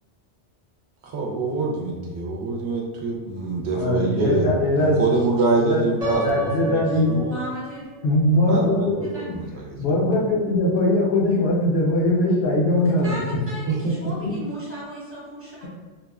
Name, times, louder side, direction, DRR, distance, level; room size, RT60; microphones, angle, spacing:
voice 1, 1.0-4.5 4.8-7.4 8.5-9.7 13.7-14.1, right 3 dB, 70° right, -1 dB, 0.9 m, -25 dB
voice 2, 3.7-5.0 5.6-5.8 6.2-7.1 8.0-9.0 9.8-13.1 14.2-14.3, left 1 dB, 70° left, -3 dB, 0.8 m, -21 dB
Piano, 6.0-8.0, right 3 dB, 40° right, 0.7 m, -30 dB
voice 3, 7.3-7.9 9.0-9.2 12.8-15.7, equal, 15° right, -8 dB, 0.8 m, -35 dB
2.9 x 2.1 x 2.3 m, 1.3 s
omnidirectional pair, 1.2 m